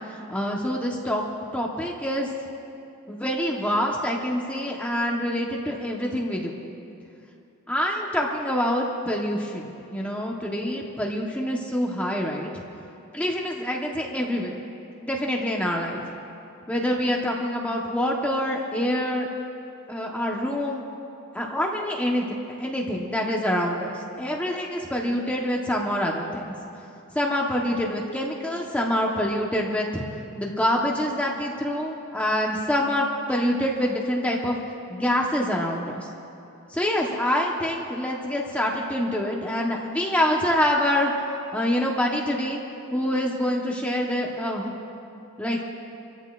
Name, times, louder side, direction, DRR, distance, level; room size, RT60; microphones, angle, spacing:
voice 1, 0.3-1.2 1.5-2.3 3.1-6.6 7.7-12.5 13.1-14.6 15.0-16.0 16.7-19.3 19.9-20.8 21.3-22.3 22.6-26.5 27.1-30.0 30.4-34.6 34.9-36.1 36.7-41.1 41.5-42.6 42.9-44.7 45.4-45.6, equal, 5° left, -1 dB, 1.0 m, -26 dB
28.5 x 14.5 x 2.4 m, 2.7 s
head